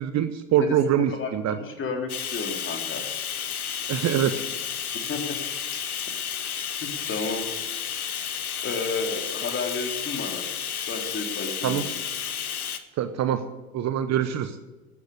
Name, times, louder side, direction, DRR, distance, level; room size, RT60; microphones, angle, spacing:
voice 1, 0.0-1.6 3.9-4.4 11.6-11.8 13.0-13.4 13.7-14.6, right 10 dB, 40° right, 11 dB, 1.0 m, -24 dB
voice 2, 1.1-3.0 5.1-5.4 6.4-6.5 6.8-7.4 8.6-10.4 10.9-12.0, left 4 dB, 30° left, 3 dB, 3.1 m, -32 dB
Bathtub (filling or washing), 2.1-12.8, left 8 dB, 90° left, 1.0 m, -32 dB
13.0 x 10.0 x 6.7 m, 1.2 s
hypercardioid pair, 75°, 43 cm